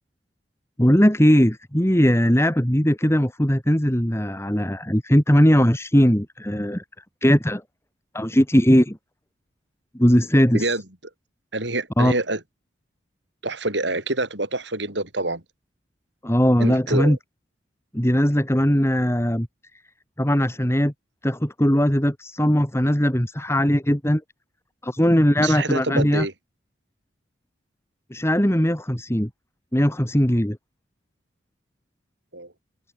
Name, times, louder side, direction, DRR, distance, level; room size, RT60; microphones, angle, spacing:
voice 1, 0.8-6.8 7.2-7.6 8.1-9.0 9.9-10.8 12.0-12.1 16.2-17.2 17.9-19.5 20.2-20.9 21.2-24.2 24.8-26.3 28.1-29.3 29.7-30.6, equal, 15° left, 2.8 m, -19 dB
voice 2, 11.5-12.4 13.4-15.4 16.6-17.2 25.4-26.3 32.3-32.5, right 2 dB, 70° right, 7.2 m, -26 dB
head